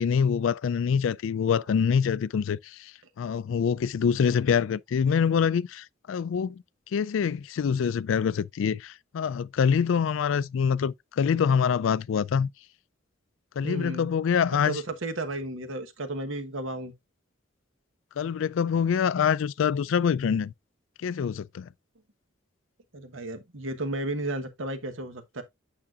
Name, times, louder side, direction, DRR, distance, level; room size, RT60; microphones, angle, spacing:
voice 1, 0.0-2.9 3.2-6.6 6.9-12.5 13.6-14.8 18.2-20.5 21.0-21.7, left 7 dB, 70° left, 0.3 m, -25 dB
voice 2, 13.6-14.1 14.6-16.9 22.9-25.4, right 2 dB, 75° right, 1.2 m, -33 dB
8.6 x 5.9 x 2.4 m
head